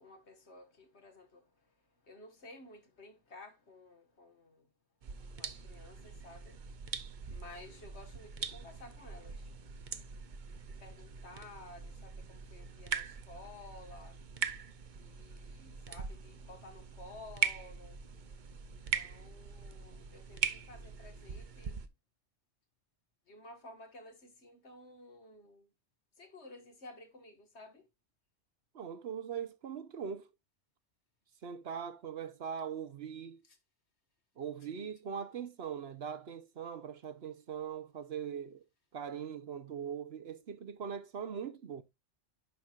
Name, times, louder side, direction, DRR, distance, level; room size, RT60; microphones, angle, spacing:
voice 1, 0.0-4.7 5.4-6.6 7.3-9.5 10.7-14.2 15.0-18.0 18.7-21.9 23.3-25.7 26.2-27.9 33.4-33.6, left 2 dB, 65° left, 1.9 m, -54 dB
sound 1, 5.0-21.9, right 6 dB, 45° right, 0.8 m, -41 dB
voice 2, 28.7-30.3 31.4-33.4 34.4-38.6 38.9-41.8, right 7 dB, 65° right, 1.0 m, -41 dB
9.7 x 6.0 x 2.4 m
omnidirectional pair, 1.2 m